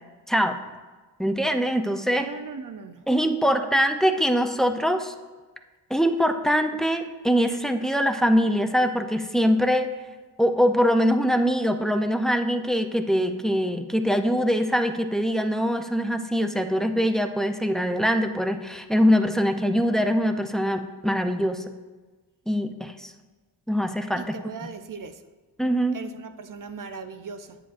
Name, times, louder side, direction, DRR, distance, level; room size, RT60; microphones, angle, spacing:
voice 1, 0.3-0.6 1.2-2.3 3.1-5.1 5.9-9.9 10.4-21.6 22.5-23.1 23.7-24.4 24.6-24.7 25.6-26.0, equal, ahead, 6 dB, 0.5 m, -23 dB
voice 2, 2.2-3.0 24.2-25.2 25.9-27.6, right 5 dB, 50° right, 8 dB, 0.6 m, -38 dB
10.0 x 8.6 x 2.5 m, 1.3 s
wide cardioid pair, 85°, 40 cm